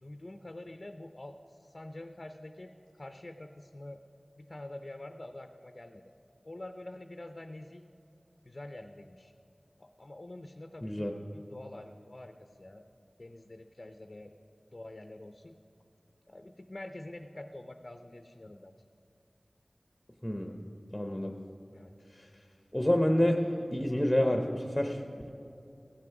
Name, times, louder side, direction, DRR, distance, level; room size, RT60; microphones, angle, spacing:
voice 1, 0.0-4.0 4.4-6.0 6.4-7.8 8.4-9.3 9.8-11.0 11.3-12.9 13.2-14.3 14.7-15.6 16.3-18.9 21.7-21.9, left 1 dB, 50° left, 7 dB, 0.5 m, -46 dB
voice 2, 10.8-11.1 20.2-20.5 20.9-21.3 22.1-22.3 22.7-23.4 23.7-25.3, left 1 dB, 15° left, 4 dB, 0.8 m, -28 dB
15.5 x 6.1 x 5.9 m, 2.7 s
wide cardioid pair, 50°, 0 cm